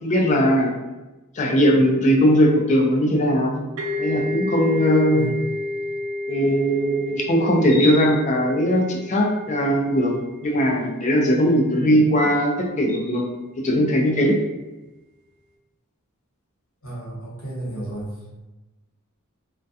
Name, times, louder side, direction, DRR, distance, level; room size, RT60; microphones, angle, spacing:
voice 1, 0.0-0.7 1.3-3.6 4.0-5.3 6.3-13.3 13.6-14.4, equal, 35° left, 0 dB, 0.4 m, -19 dB
sound 1, 3.8-11.3, left 2 dB, 75° right, 0.5 m, -31 dB
voice 2, 5.1-5.5 16.8-18.1, right 1 dB, 75° left, -6 dB, 1.0 m, -32 dB
2.3 x 2.2 x 2.6 m, 1.1 s
head